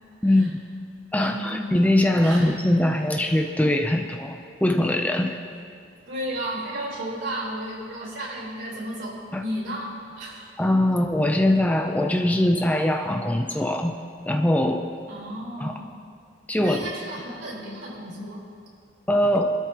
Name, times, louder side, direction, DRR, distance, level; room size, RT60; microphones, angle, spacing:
voice 1, 0.2-0.6 1.1-5.4 9.3-9.4 10.6-14.0 14.3-14.9 15.6-15.8 16.5-16.9 19.1-19.5, left 1 dB, 10° left, 4 dB, 0.6 m, -22 dB
voice 2, 1.2-1.7 2.2-2.5 6.1-10.5 15.1-15.9 16.6-18.4, right 1 dB, 70° right, -4 dB, 4.3 m, -33 dB
24.0 x 13.0 x 3.0 m, 2.4 s
head